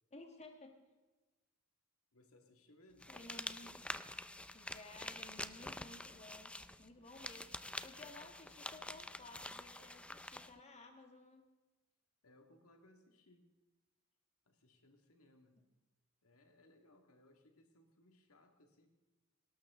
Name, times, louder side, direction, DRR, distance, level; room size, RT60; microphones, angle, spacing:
voice 1, 0.1-0.8 3.1-3.8 4.5-6.5 6.8-7.5 7.8-11.4, left 2 dB, 30° left, 3 dB, 1.6 m, -56 dB
voice 2, 2.1-3.1 12.2-13.5 14.5-15.6 16.2-19.0, left 1 dB, 70° left, 4 dB, 2.0 m, -66 dB
sound 1, 3.0-10.5, left 1 dB, 5° left, 0.4 m, -47 dB
18.5 x 18.0 x 3.7 m, 1.2 s
head